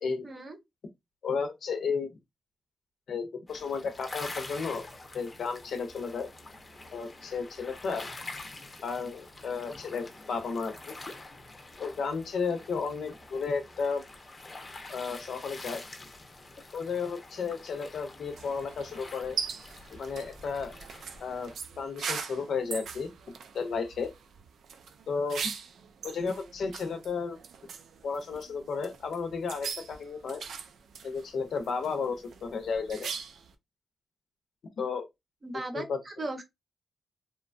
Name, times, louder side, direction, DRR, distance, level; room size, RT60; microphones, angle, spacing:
voice 1, 0.2-0.6 35.4-36.4, right 2 dB, 30° right, 0.7 m, -37 dB
voice 2, 1.2-2.1 3.1-4.9 5.1-6.3 6.9-8.1 8.8-10.9 11.8-14.0 14.9-15.8 16.7-19.4 19.9-20.7 21.2-21.5 21.8-23.1 23.5-24.1 25.1-25.4 26.0-27.4 28.0-30.4 31.0-33.1 34.8-35.1 35.7-36.0, left 5 dB, 70° left, 0.6 m, -33 dB
sound 1, 3.5-21.6, left 2 dB, 30° left, 0.6 m, -46 dB
sound 2, 18.3-33.5, right 6 dB, 80° right, 0.4 m, -41 dB
2.8 x 2.2 x 2.5 m
cardioid pair, 105°, 0 cm